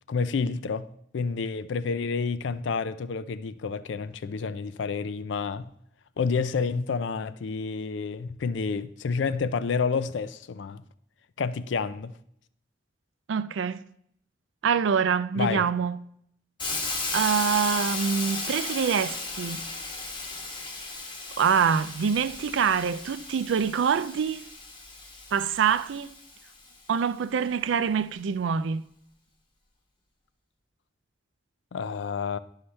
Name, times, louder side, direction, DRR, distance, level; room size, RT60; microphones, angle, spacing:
voice 1, 0.1-0.9 1.1-5.7 6.2-10.8 11.4-12.1 15.4-15.6 31.7-32.4, left 5 dB, 75° left, 0.4 m, -29 dB
voice 2, 13.3-13.8 14.6-16.0 17.1-19.6 21.4-24.5 25.3-26.1 26.9-28.8, right 7 dB, 80° right, 0.4 m, -25 dB
Hiss, 16.6-26.5, left 3 dB, 25° left, 1.1 m, -35 dB
11.5 x 5.6 x 3.2 m
head